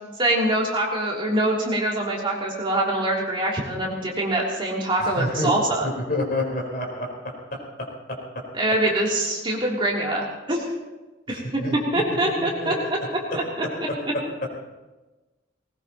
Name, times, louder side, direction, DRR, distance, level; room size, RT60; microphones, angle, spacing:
voice 1, 0.2-5.9 8.5-10.7 11.3-11.6 11.9-12.7 13.3-13.4, right 1 dB, 25° right, -4 dB, 3.2 m, -24 dB
voice 2, 5.0-5.5 5.8-8.4 11.3-12.0 12.4-12.9 13.3-13.4 13.9-14.2, left 1 dB, 45° left, -1 dB, 4.3 m, -29 dB
20.0 x 20.0 x 3.0 m, 1.2 s
head